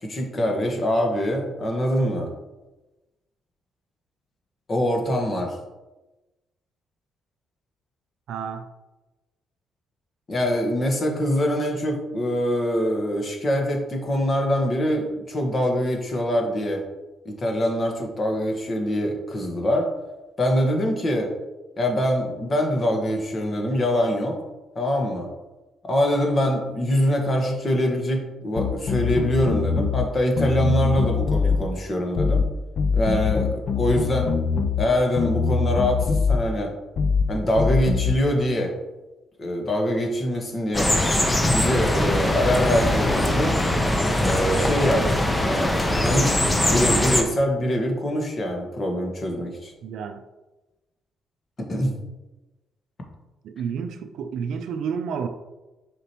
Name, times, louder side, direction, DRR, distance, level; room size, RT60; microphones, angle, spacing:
voice 1, 0.0-2.3 4.7-5.6 10.3-16.8 17.2-19.9 20.4-21.3 21.8-24.4 24.7-25.3 25.8-32.4 32.9-34.3 34.8-36.7 37.3-38.7 39.4-40.9 41.5-43.6 44.2-45.1 45.4-49.7 51.6-52.0, equal, 40° left, 1.4 m, -24 dB
voice 2, 8.3-8.7 49.8-50.2 53.4-55.3, right 6 dB, 75° right, 0.4 m, -30 dB
sound 1, 28.6-30.1 30.4-31.6 32.2-32.5 32.8-34.9 35.2-36.4 37.0-37.3 37.6-38.2, left 5 dB, 55° left, 0.4 m, -23 dB
sound 2, 40.7-47.2, left 1 dB, 15° left, 0.8 m, -21 dB
6.6 x 5.0 x 3.0 m
cardioid pair, 90°, 0 cm